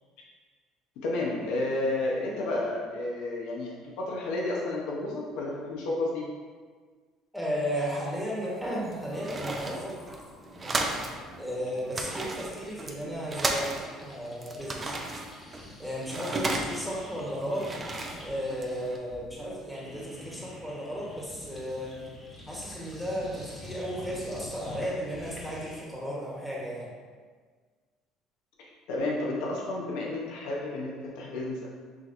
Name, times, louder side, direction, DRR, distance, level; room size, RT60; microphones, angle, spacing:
voice 1, 1.0-6.2 28.9-31.7, left 2 dB, 80° left, -3 dB, 0.8 m, -31 dB
voice 2, 7.3-10.0 10.6-10.9 11.4-15.0 15.8-17.7 18.2-22.0 22.5-26.9, equal, ahead, -6 dB, 1.2 m, -34 dB
sound 1, 8.2-8.3 8.4-14.6 14.9-26.0, left 1 dB, 20° left, 1.2 m, -48 dB
sound 2, 8.6-11.2 11.5-11.6 11.8-14.1 14.4-17.0 17.4-19.0, right 2 dB, 25° right, 0.5 m, -34 dB
6.1 x 2.8 x 2.6 m, 1.5 s
supercardioid pair, 90°, 0 cm